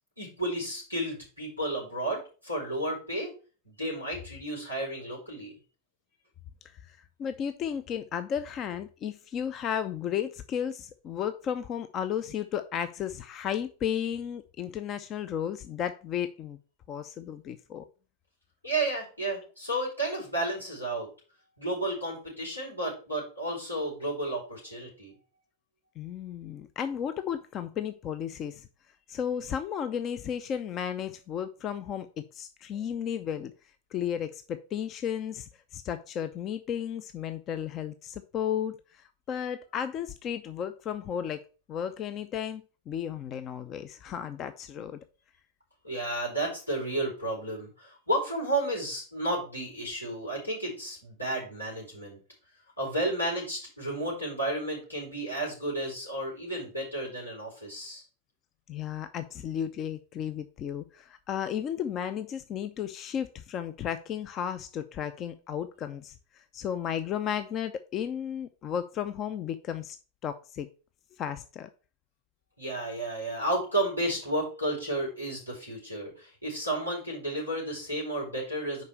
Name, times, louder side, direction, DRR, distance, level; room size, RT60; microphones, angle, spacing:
voice 1, 0.2-3.3 3.6-5.6 18.6-21.1 21.6-25.1 45.8-52.2 52.8-58.0 72.6-78.8, right 1 dB, 85° left, -3 dB, 4.7 m, -32 dB
voice 2, 6.6-16.6 16.9-17.8 26.0-28.7 29.1-32.1 32.3-33.5 33.9-41.4 41.7-45.0 58.7-70.0 70.2-70.7 71.2-71.7, left 9 dB, 30° left, 10 dB, 0.5 m, -34 dB
5.4 x 5.1 x 6.1 m, 0.36 s
figure-of-eight pair, 90°, 0 cm